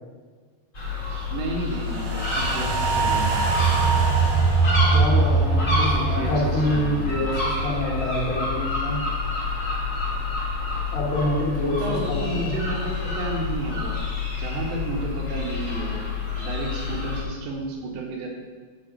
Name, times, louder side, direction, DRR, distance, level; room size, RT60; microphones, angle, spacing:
sound 1, 0.7-17.2, left 4 dB, 35° left, 1.2 m, -28 dB
voice 1, 1.3-3.4 5.8-7.1 11.6-13.9 14.4-16.0 16.4-18.3, right 3 dB, 85° right, 0 dB, 3.6 m, -32 dB
sound 2, 1.8-8.2 8.6-8.7, right 4 dB, 60° right, 2.4 m, -23 dB
voice 2, 4.9-9.0 10.9-12.6, left 1 dB, 80° left, -3 dB, 4.1 m, -26 dB
8.6 x 5.5 x 6.5 m, 1.5 s
omnidirectional pair, 4.9 m